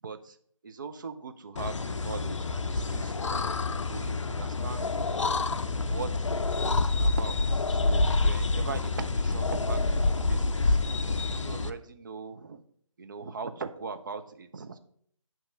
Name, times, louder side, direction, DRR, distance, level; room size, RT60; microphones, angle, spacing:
voice 1, 0.0-0.4 0.6-3.4 3.9-5.3 5.9-10.8 11.4-12.6 13.0-14.8, right 5 dB, 35° right, 8 dB, 0.5 m, -40 dB
sound 1, 1.6-11.7, left 3 dB, 65° left, 0.5 m, -27 dB
8.6 x 3.0 x 5.1 m, 0.63 s
figure-of-eight pair, 145°, 17 cm